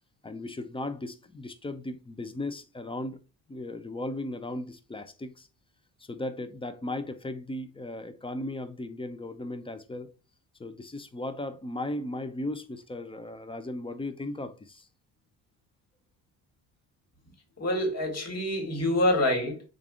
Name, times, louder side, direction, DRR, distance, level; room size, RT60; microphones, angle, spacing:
voice 1, 0.2-3.2 3.5-5.5 6.0-10.1 10.6-14.9, left 2 dB, 15° left, 0.4 m, -36 dB
voice 2, 17.6-19.6, left 1 dB, 35° left, 1.7 m, -26 dB
3.4 x 2.4 x 3.6 m
supercardioid pair, 75°, 42 cm